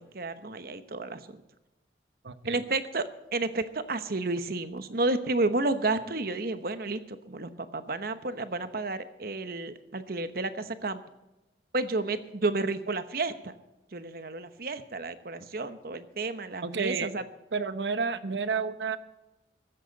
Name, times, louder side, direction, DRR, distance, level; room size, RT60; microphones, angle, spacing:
voice 1, 0.0-1.4 2.5-3.0 3.3-11.0 11.7-13.5 13.9-17.2, right 2 dB, 55° right, 11 dB, 1.0 m, -31 dB
voice 2, 2.2-2.6 16.6-17.1 17.5-19.0, right 5 dB, 80° right, 12 dB, 0.9 m, -30 dB
16.0 x 13.5 x 4.1 m, 1.0 s
head